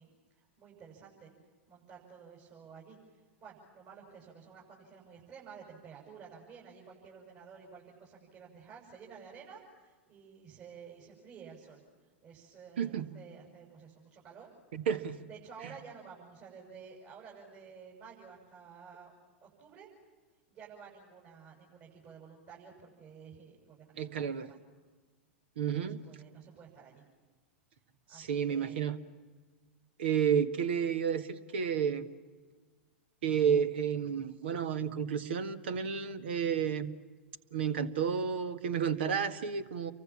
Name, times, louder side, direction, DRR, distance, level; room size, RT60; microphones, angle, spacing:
voice 1, 0.0-1.3 1.7-11.8 12.2-14.5 15.3-19.1 19.4-19.9 20.5-24.6 25.8-27.0 28.1-28.9, right 6 dB, 40° right, -2 dB, 7.2 m, -52 dB
voice 2, 12.8-13.1 14.7-15.2 15.6-15.7 24.0-24.5 25.6-26.0 28.1-28.9 30.0-32.1 33.2-36.9 37.5-39.9, right 7 dB, 65° right, 12 dB, 1.7 m, -31 dB
30.0 x 24.0 x 7.3 m, 1.4 s
figure-of-eight pair, 100°, 6 cm